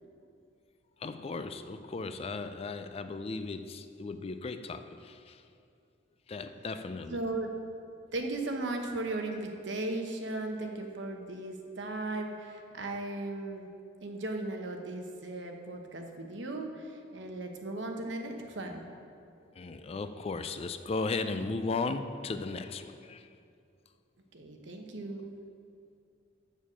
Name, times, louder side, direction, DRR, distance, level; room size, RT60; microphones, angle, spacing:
voice 1, 1.0-5.4 6.3-7.2 19.6-23.3, left 3 dB, 30° left, 10 dB, 0.3 m, -36 dB
voice 2, 7.1-7.5 8.1-13.7 14.0-18.8 24.3-25.3, right 2 dB, 70° right, 3 dB, 1.0 m, -37 dB
7.2 x 6.6 x 7.3 m, 2.4 s
head